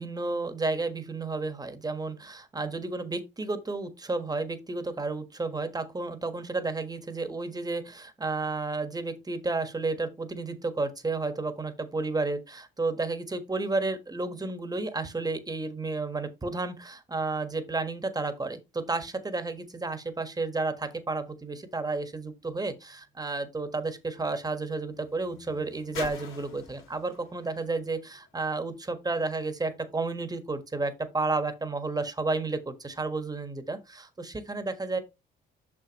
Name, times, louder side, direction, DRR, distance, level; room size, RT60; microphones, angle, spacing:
voice 1, 0.0-35.0, right 3 dB, 20° right, 1.4 m, -32 dB
sound 1, 22.4-28.9 29.7-29.8, left 6 dB, 85° left, 3.0 m, -47 dB
6.3 x 6.2 x 3.0 m
cardioid pair, 80°, 20 cm